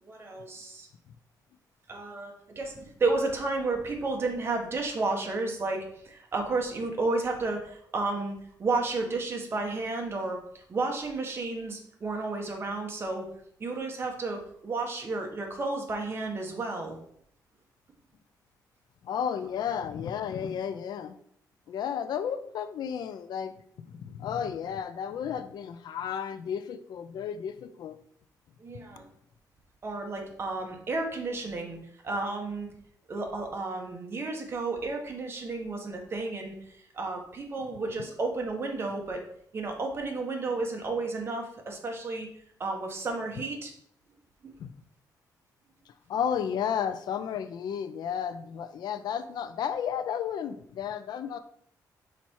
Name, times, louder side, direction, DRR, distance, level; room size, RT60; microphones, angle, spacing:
voice 1, 0.0-0.9 1.9-13.3 13.6-17.0 28.6-29.1 29.8-31.8 32.0-32.7 33.1-39.2 39.5-42.3 42.6-43.7 44.4-44.5, right 3 dB, 35° right, 2 dB, 1.3 m, -32 dB
voice 2, 19.0-21.1 21.7-28.0 38.0-38.1 44.6-44.7 45.9-51.4, left 8 dB, 75° left, 11 dB, 0.5 m, -33 dB
5.7 x 4.2 x 4.6 m, 0.66 s
cardioid pair, 135°, 7 cm